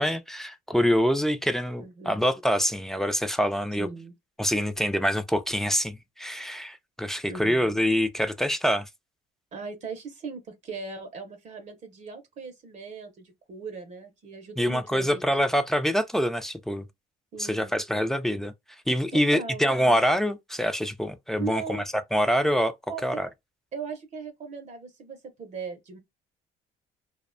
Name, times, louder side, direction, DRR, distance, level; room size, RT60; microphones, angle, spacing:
voice 1, 0.0-3.9 4.4-8.9 14.6-16.8 17.4-18.5 18.9-21.8 22.1-22.7 23.0-23.3, equal, ahead, 0.3 m, -25 dB
voice 2, 1.8-2.3 3.8-4.1 7.3-7.7 9.5-15.2 17.3-17.7 19.1-19.7 21.3-21.8 22.9-23.2 23.7-26.0, right 4 dB, 45° right, 0.6 m, -38 dB
2.5 x 2.1 x 2.4 m
cardioid pair, 110°, 17 cm